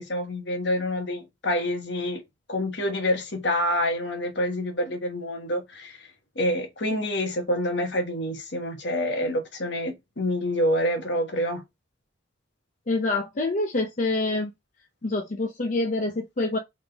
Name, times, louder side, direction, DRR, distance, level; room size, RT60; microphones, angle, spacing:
voice 1, 0.0-2.2 2.5-6.1 6.3-11.6, left 1 dB, 65° left, 1.3 m, -27 dB
voice 2, 12.9-14.5 15.0-16.6, left 2 dB, 45° left, 0.7 m, -26 dB
3.9 x 3.7 x 3.4 m
head